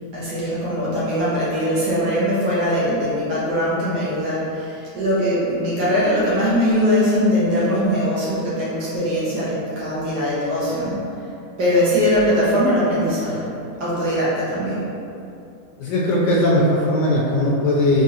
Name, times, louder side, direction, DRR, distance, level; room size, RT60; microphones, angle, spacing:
voice 1, 0.1-11.1 11.6-13.5 13.8-14.9, equal, 60° right, -9 dB, 1.6 m, -21 dB
voice 2, 15.8-18.0, left 1 dB, 70° left, -5 dB, 1.1 m, -18 dB
3.8 x 3.6 x 2.8 m, 2.7 s
omnidirectional pair, 2.1 m